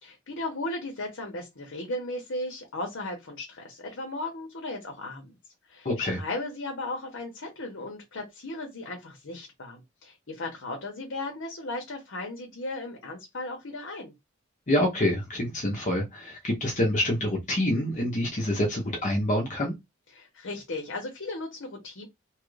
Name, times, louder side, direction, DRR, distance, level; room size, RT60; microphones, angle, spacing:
voice 1, 0.0-5.4 5.7-14.1 20.1-22.1, left 2 dB, 65° left, 0.9 m, -36 dB
voice 2, 5.8-6.2 14.7-19.7, left 1 dB, 35° left, 0.8 m, -26 dB
3.0 x 2.4 x 3.2 m
head